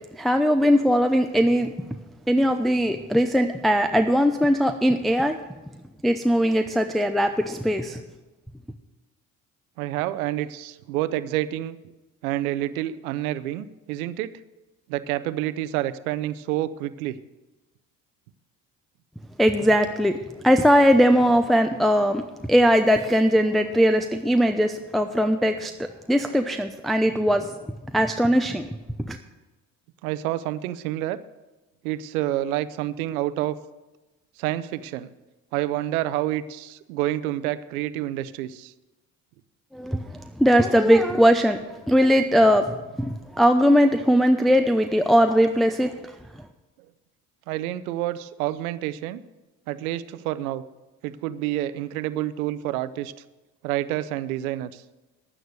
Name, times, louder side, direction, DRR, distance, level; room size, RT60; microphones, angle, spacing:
voice 1, 0.1-1.7 2.3-5.4 6.0-8.0 19.4-20.2 20.4-22.2 22.5-27.5 27.9-28.7 29.0-29.2 39.7-41.6 41.9-46.1, equal, ahead, 6 dB, 0.7 m, -20 dB
voice 2, 9.8-11.8 12.2-14.3 14.9-17.2 30.0-31.2 31.8-33.6 34.4-35.1 35.5-38.7 47.5-49.2 49.7-50.6 51.0-53.1 53.6-54.8, right 14 dB, 85° right, 15 dB, 0.7 m, -28 dB
11.0 x 9.3 x 6.5 m, 1.1 s
hypercardioid pair, 60°, 42 cm